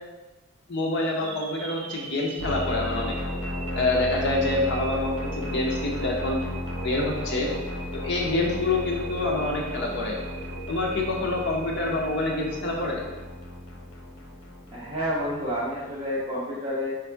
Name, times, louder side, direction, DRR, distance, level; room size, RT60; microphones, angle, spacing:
voice 1, 0.7-3.2 3.7-6.4 6.8-7.5 7.9-10.1 10.7-13.0, left 2 dB, 50° left, -1 dB, 0.8 m, -26 dB
sound 1, 1.2-13.3, right 5 dB, 75° right, 0.5 m, -41 dB
sound 2, 2.4-16.0, left 1 dB, 85° left, 0.9 m, -35 dB
voice 2, 14.7-17.0, equal, 25° right, -9 dB, 0.7 m, -29 dB
3.5 x 3.3 x 4.5 m, 1.2 s
head